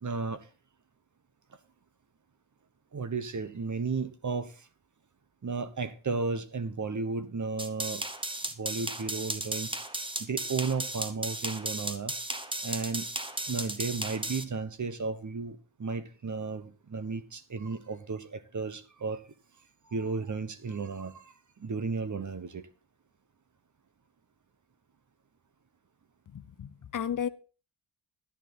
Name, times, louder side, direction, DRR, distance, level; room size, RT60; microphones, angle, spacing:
voice 1, 0.0-0.5 2.9-4.7 5.4-8.0 8.6-9.7 10.2-12.1 12.6-13.1 13.5-19.2 19.9-22.7, right 4 dB, 35° right, 1.1 m, -34 dB
sound 1, 7.6-14.4, right 1 dB, 10° right, 1.0 m, -35 dB
voice 2, 26.3-27.3, left 8 dB, 40° left, 0.7 m, -33 dB
11.5 x 10.0 x 4.1 m
wide cardioid pair, 120°, 50 cm